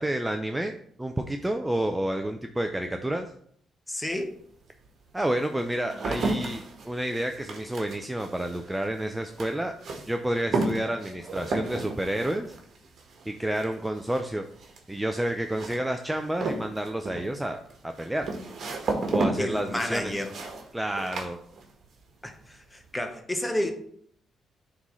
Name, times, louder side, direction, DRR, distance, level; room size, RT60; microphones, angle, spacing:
voice 1, 0.0-3.3 5.1-9.7 10.1-12.5 13.3-14.5 14.9-18.3 19.1-20.2 20.7-21.4, right 1 dB, 10° right, 5 dB, 0.5 m, -30 dB
voice 2, 3.9-4.3 19.4-20.3 22.2-23.7, left 1 dB, 10° left, 6 dB, 1.0 m, -31 dB
sound 1, 4.1-4.2 4.8-22.0 22.3-22.9, right 3 dB, 55° right, 1.5 m, -34 dB
9.5 x 3.8 x 3.1 m, 0.64 s
cardioid pair, 90°, 0 cm